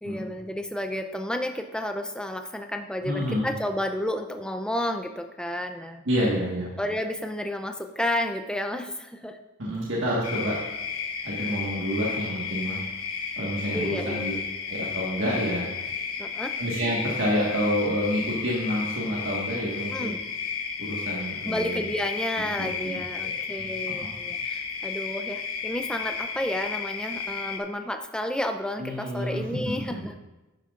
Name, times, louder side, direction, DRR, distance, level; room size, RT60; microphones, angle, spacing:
voice 1, 0.0-6.0 6.8-9.4 13.7-14.3 16.2-16.5 19.9-20.2 21.4-30.2, left 1 dB, 5° left, 6 dB, 0.4 m, -31 dB
voice 2, 3.0-3.5 6.0-6.7 9.6-10.6 11.2-12.8 13.4-14.3 14.7-15.7 16.6-20.1 20.8-21.8 22.6-23.3 23.9-24.1 28.8-29.4, equal, 60° right, -5 dB, 1.6 m, -28 dB
sound 1, 10.2-27.6, left 6 dB, 80° left, 1.1 m, -33 dB
11.5 x 9.4 x 2.5 m, 1.1 s
head